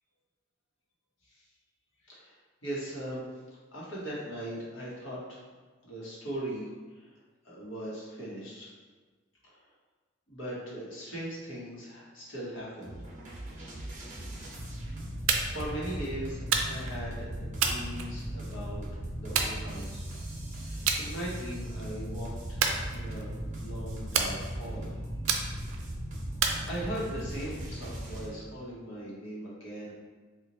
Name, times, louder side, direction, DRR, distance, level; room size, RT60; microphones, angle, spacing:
voice 1, 2.6-3.3 3.7-5.5 5.8-6.7 6.9-7.2 7.4-8.7 10.3-12.9 15.5-18.9 19.1-20.0 20.5-23.3 23.6-24.9 26.5-29.9, right 1 dB, 65° left, -6 dB, 1.1 m, -39 dB
sound 1, 12.8-28.3, right 1 dB, 35° right, 0.7 m, -38 dB
sound 2, 15.3-15.7 16.5-17.0 17.6-18.5 19.4-20.2 20.9-21.1 21.5-21.8 22.6-23.4 24.1-24.8 25.3-25.8 26.4-27.2, right 6 dB, 85° right, 0.4 m, -30 dB
3.0 x 2.4 x 3.9 m, 1.4 s
head